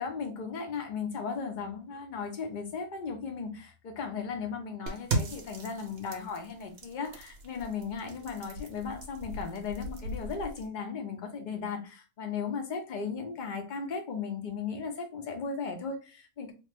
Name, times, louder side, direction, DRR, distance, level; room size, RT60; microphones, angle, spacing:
voice 1, 0.0-16.5, left 5 dB, 50° left, 0.5 m, -36 dB
sound 1, 4.9-10.7, right 2 dB, 55° right, 0.8 m, -38 dB
3.2 x 2.0 x 3.3 m
omnidirectional pair, 1.6 m